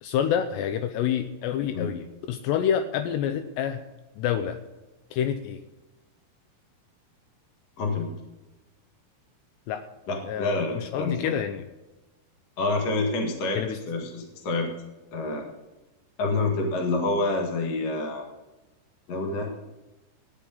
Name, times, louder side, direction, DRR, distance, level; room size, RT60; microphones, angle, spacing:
voice 1, 0.0-3.8 4.2-4.6 5.1-5.6 9.7-9.9 10.2-11.7 13.5-13.8, left 9 dB, 80° left, 7 dB, 2.8 m, -28 dB
voice 2, 7.8-8.1 10.1-11.3 12.6-13.6 13.9-14.7 15.1-15.4 16.2-18.2 19.1-19.5, left 2 dB, 45° left, 1 dB, 2.4 m, -27 dB
14.5 x 11.0 x 4.0 m, 1.1 s
omnidirectional pair, 5.1 m